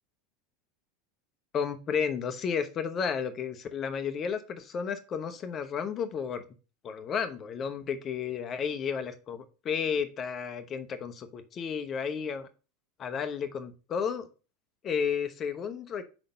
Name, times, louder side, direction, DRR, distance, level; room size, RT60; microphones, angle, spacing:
voice 1, 1.5-6.5 6.8-12.5 13.0-14.3 14.8-16.0, left 6 dB, 35° left, 9 dB, 0.9 m, -32 dB
5.0 x 3.9 x 5.2 m, 0.34 s
hypercardioid pair, 85°, 0 cm